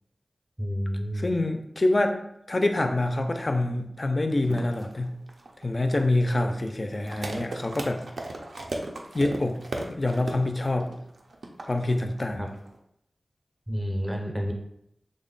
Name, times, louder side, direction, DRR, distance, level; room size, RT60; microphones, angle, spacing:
voice 1, 0.6-1.3 12.4-12.5 13.7-14.5, equal, 15° right, 1 dB, 0.5 m, -29 dB
voice 2, 1.1-5.1 5.6-8.0 9.1-9.6 9.9-10.9 11.7-12.5, left 2 dB, 35° left, 6 dB, 0.4 m, -26 dB
sound 1, 4.4-12.8, right 2 dB, 85° right, 0.5 m, -36 dB
3.6 x 2.1 x 3.8 m, 0.77 s
wide cardioid pair, 90°, 0 cm